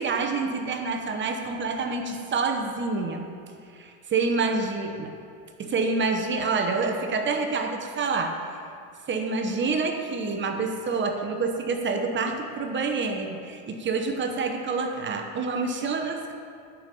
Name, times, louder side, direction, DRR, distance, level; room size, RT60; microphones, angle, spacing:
voice 1, 0.0-3.3 3.7-5.1 5.6-8.4 9.1-16.3, right 4 dB, 30° right, 4 dB, 0.9 m, -27 dB
10.5 x 5.3 x 6.8 m, 2.3 s
supercardioid pair, 130°, 40 cm